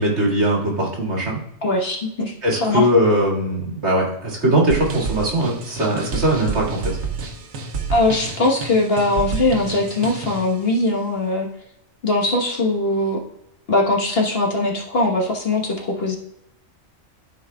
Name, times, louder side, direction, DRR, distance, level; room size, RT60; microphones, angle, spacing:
voice 1, 0.0-1.4 2.4-6.8, right 1 dB, 55° right, -3 dB, 2.5 m, -20 dB
voice 2, 1.6-2.9 7.9-11.5 12.0-13.2 13.7-16.2, left 2 dB, 50° left, -1 dB, 1.4 m, -21 dB
sound 1, 4.7-10.5, right 5 dB, 85° right, 1.3 m, -29 dB
13.0 x 4.7 x 2.3 m, 0.78 s
omnidirectional pair, 1.4 m